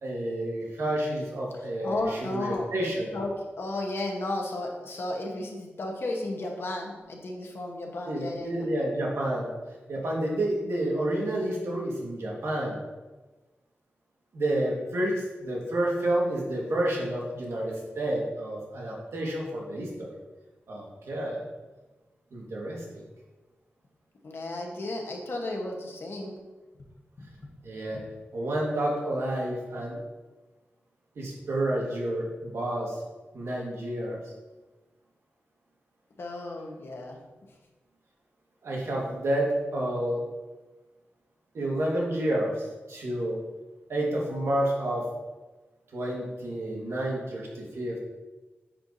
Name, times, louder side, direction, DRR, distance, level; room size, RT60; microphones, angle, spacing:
voice 1, 0.0-3.1 8.0-9.5 9.9-12.8 14.3-20.2 20.7-21.4 22.3-23.0 27.6-28.0 28.3-30.0 31.1-33.0 33.3-34.3 38.6-40.2 41.5-43.4 43.9-45.0 45.9-48.0, right 1 dB, 90° right, -3 dB, 1.6 m, -29 dB
voice 2, 1.8-2.7 3.1-3.3 3.6-8.7 24.2-26.3 27.2-27.5 36.2-37.2, left 2 dB, 60° left, 1 dB, 1.1 m, -34 dB
9.8 x 4.5 x 2.7 m, 1.2 s
wide cardioid pair, 125°, 4 cm